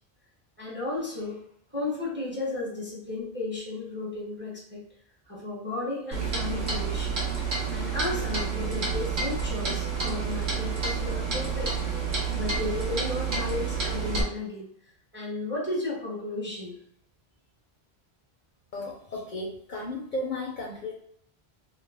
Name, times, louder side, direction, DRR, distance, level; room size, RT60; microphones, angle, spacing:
voice 1, 0.6-1.4 1.7-4.8 5.3-7.2 7.7-11.8 12.3-14.7 15.1-16.7, left 2 dB, 15° right, -5 dB, 0.6 m, -34 dB
Clock, 6.1-14.2, right 5 dB, 55° right, 0.8 m, -29 dB
voice 2, 18.7-20.9, left 2 dB, 55° left, -3 dB, 0.6 m, -34 dB
2.3 x 2.1 x 3.3 m, 0.68 s
omnidirectional pair, 1.1 m